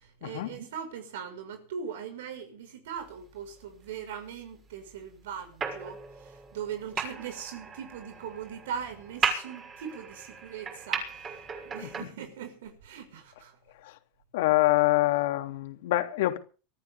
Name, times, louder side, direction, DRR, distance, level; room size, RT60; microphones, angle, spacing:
voice 1, 0.0-13.6, right 7 dB, 90° right, 5.7 m, -40 dB
sound 1, 5.6-12.0, right 5 dB, 25° right, 6.7 m, -36 dB
voice 2, 14.3-16.4, left 17 dB, 80° left, 3.1 m, -25 dB
24.0 x 14.0 x 3.7 m
supercardioid pair, 140°, 0 cm